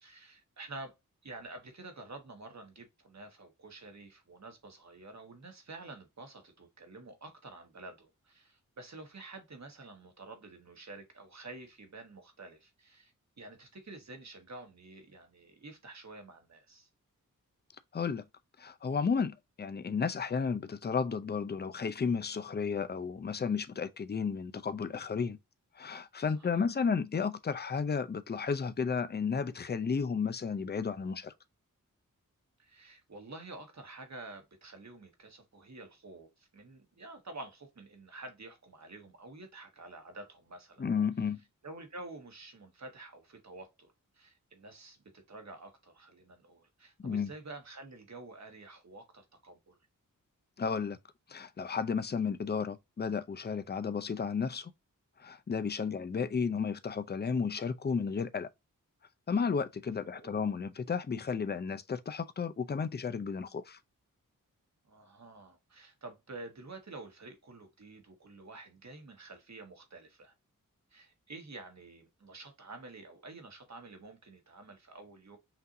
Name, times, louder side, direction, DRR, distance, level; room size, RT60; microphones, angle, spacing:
voice 1, 0.0-0.9 1.2-16.9 26.3-26.6 32.6-40.8 41.6-49.8 55.7-55.8 60.1-60.3 64.8-70.3 70.9-75.4, right 2 dB, 55° right, 1.5 m, -49 dB
voice 2, 17.9-18.2 18.6-25.4 25.8-31.3 40.8-41.4 47.0-47.3 50.6-51.0 51.3-54.7 55.2-58.5 59.3-63.8, left 5 dB, 30° left, 0.5 m, -33 dB
5.9 x 2.7 x 2.6 m
cardioid pair, 50°, 33 cm